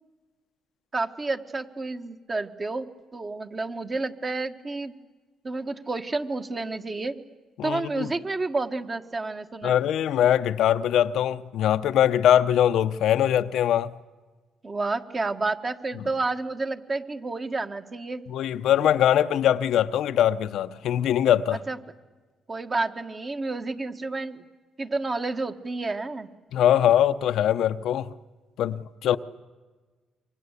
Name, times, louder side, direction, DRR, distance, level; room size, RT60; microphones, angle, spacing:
voice 1, 0.9-5.0 5.4-7.2 7.6-9.8 14.6-18.2 21.5-21.8 22.5-24.4 24.8-26.3, right 3 dB, 30° right, 1.7 m, -30 dB
voice 2, 7.6-8.1 9.6-13.9 18.3-21.6 26.5-28.1 28.6-29.2, left 10 dB, 80° left, 0.8 m, -22 dB
28.0 x 24.0 x 8.3 m
cardioid pair, 90°, 0 cm